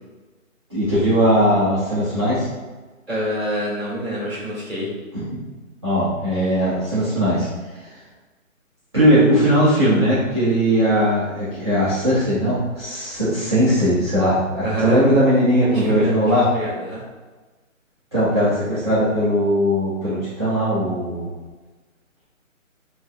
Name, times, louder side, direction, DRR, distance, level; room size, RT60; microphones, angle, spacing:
voice 1, 0.7-2.5 5.1-5.2 5.8-7.5 7.8-7.9 8.9-16.5 18.1-21.3, equal, 20° right, -15 dB, 0.7 m, -19 dB
voice 2, 3.1-4.9 14.6-15.0 15.7-17.0, right 1 dB, 5° left, -19 dB, 1.1 m, -26 dB
6.4 x 2.6 x 2.4 m, 1.3 s
hypercardioid pair, 170°, 41 cm